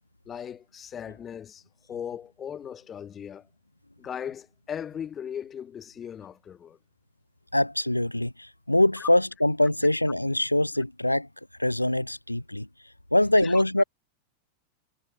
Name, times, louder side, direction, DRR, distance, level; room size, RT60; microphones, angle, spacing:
voice 1, 0.3-1.6 1.9-3.5 4.0-6.8 9.0-9.1 13.4-13.6, left 8 dB, 25° left, 6.8 m, -38 dB
voice 2, 7.5-11.3 11.6-12.7 13.1-13.8, left 1 dB, 85° left, 0.6 m, -23 dB
figure-of-eight pair, 90°, 0 cm